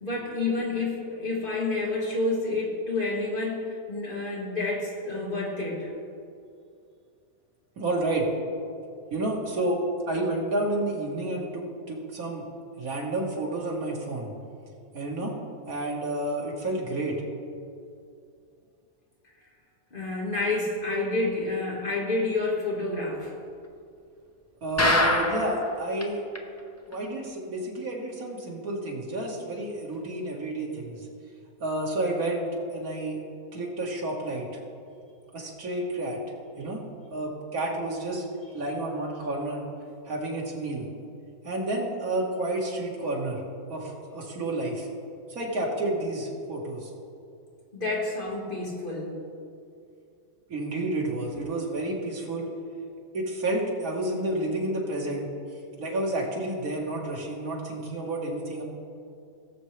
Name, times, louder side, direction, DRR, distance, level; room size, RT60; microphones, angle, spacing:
voice 1, 0.0-5.9 19.9-23.3 47.7-49.2, left 2 dB, 40° left, -3 dB, 2.0 m, -29 dB
voice 2, 7.8-8.3 9.1-12.4 12.8-14.3 14.9-15.3 15.7-17.2 24.6-26.2 26.9-31.1 31.6-33.2 33.5-34.5 35.3-36.2 36.6-36.8 37.1-38.2 38.5-39.7 40.1-40.9 41.4-43.4 43.7-44.9 45.3-46.9 50.5-52.5 53.1-55.3 55.8-58.6, right 1 dB, 90° right, -2 dB, 2.0 m, -30 dB
sound 1, 24.8-25.6 26.0-26.1 26.3-26.4 26.9-27.0, left 2 dB, 15° left, 0.6 m, -23 dB
19.0 x 6.8 x 3.2 m, 2.4 s
omnidirectional pair, 1.5 m